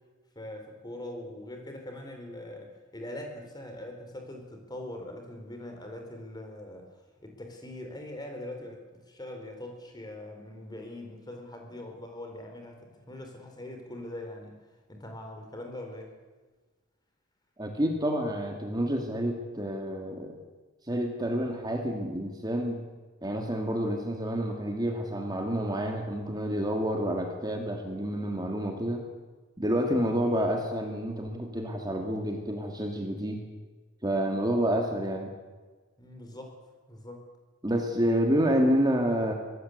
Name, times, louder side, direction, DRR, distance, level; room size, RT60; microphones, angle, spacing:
voice 1, 0.4-6.9 7.2-12.8 13.1-14.5 14.9-16.1 36.0-36.6 36.9-37.2, left 1 dB, 20° left, 3 dB, 4.4 m, -42 dB
voice 2, 17.6-20.4 20.9-22.8 23.2-29.0 29.6-33.4 34.0-35.3 37.6-39.3, equal, 20° right, 2 dB, 2.4 m, -29 dB
24.5 x 18.0 x 8.2 m, 1.4 s
head